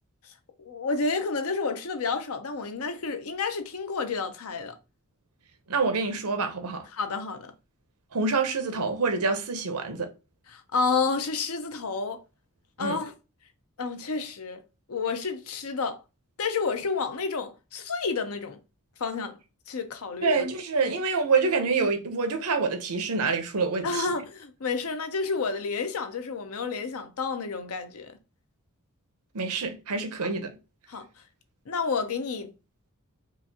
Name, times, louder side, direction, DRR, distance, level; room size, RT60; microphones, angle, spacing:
voice 1, 0.6-4.7 6.9-7.5 10.5-12.2 12.8-13.1 13.8-14.6 14.9-16.0 16.4-18.6 19.0-19.4 19.7-20.4 23.8-28.1 30.9-31.1 31.7-32.5, left 4 dB, 75° left, 0.6 m, -30 dB
voice 2, 5.7-6.9 8.1-10.1 12.8-13.0 20.2-24.1 29.3-30.6, right 4 dB, 85° right, 0.8 m, -26 dB
4.8 x 2.5 x 2.8 m
head